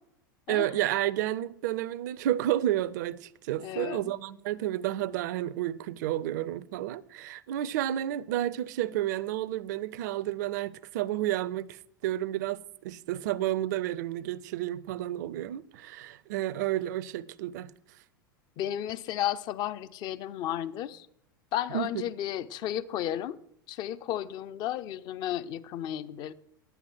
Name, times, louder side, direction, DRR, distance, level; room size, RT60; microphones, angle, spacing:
voice 1, 0.5-17.7 21.7-21.9, right 13 dB, 55° right, 0.5 m, -31 dB
voice 2, 3.5-4.1 18.6-21.1 21.5-23.4 23.7-26.3, left 12 dB, 35° left, 0.6 m, -33 dB
9.3 x 7.9 x 7.6 m
figure-of-eight pair, 85°, 12 cm